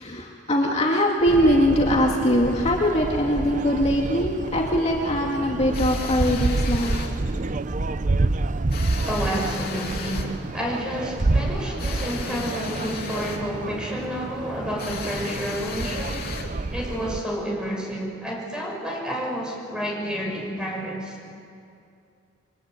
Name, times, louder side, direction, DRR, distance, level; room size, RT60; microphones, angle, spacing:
voice 1, 0.0-7.0, equal, 35° left, -1 dB, 2.2 m, -22 dB
sound 1, 1.3-17.2, right 2 dB, 40° right, 0.6 m, -28 dB
sound 2, 5.7-7.2 8.7-10.4 11.8-13.5 14.8-16.6, left 5 dB, 55° left, 2.9 m, -36 dB
voice 2, 9.1-16.2 16.7-21.2, equal, 5° right, -1 dB, 6.0 m, -30 dB
28.0 x 23.0 x 9.1 m, 2.6 s
head